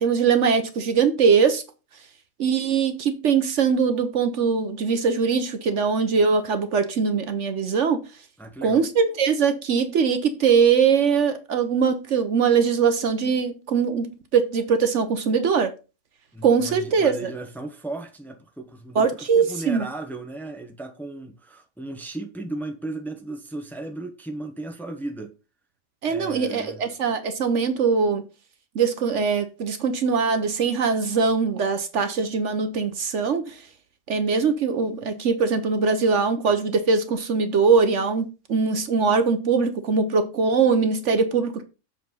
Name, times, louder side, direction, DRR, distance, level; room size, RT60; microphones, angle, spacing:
voice 1, 0.0-1.6 2.4-8.0 8.6-15.7 16.4-17.3 18.9-19.9 26.0-28.2 28.7-33.6 34.1-41.6, right 5 dB, 60° right, 1.1 m, -22 dB
voice 2, 8.4-8.8 16.3-25.3 26.0-26.8, right 2 dB, ahead, 0.9 m, -35 dB
7.5 x 4.1 x 5.3 m
omnidirectional pair, 1.4 m